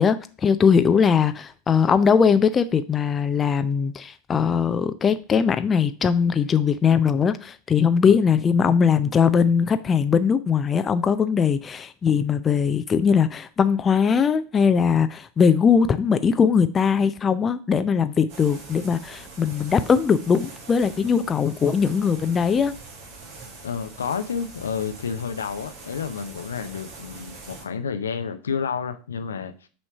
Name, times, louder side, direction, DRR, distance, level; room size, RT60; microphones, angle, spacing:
voice 1, 0.0-22.7, left 6 dB, 25° left, 0.4 m, -20 dB
sound 1, 18.3-27.6, right 3 dB, 50° right, 1.8 m, -43 dB
voice 2, 23.6-29.7, left 6 dB, 75° left, 0.5 m, -30 dB
6.0 x 3.2 x 5.8 m
figure-of-eight pair, 85°, 0 cm